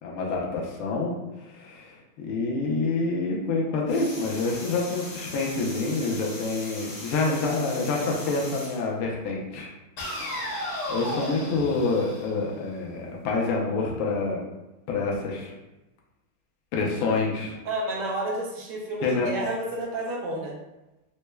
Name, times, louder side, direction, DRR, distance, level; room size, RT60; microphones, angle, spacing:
voice 1, 0.0-1.1 1.4-9.7 10.4-14.4 14.9-15.5 16.7-17.5 19.0-19.3, left 3 dB, 75° left, -2 dB, 1.6 m, -27 dB
sound 1, 3.9-8.8 10.0-12.9, left 1 dB, 55° left, 1.2 m, -37 dB
voice 2, 17.6-20.6, right 2 dB, 70° right, -2 dB, 1.0 m, -30 dB
6.3 x 2.1 x 2.2 m, 1.0 s
omnidirectional pair, 2.4 m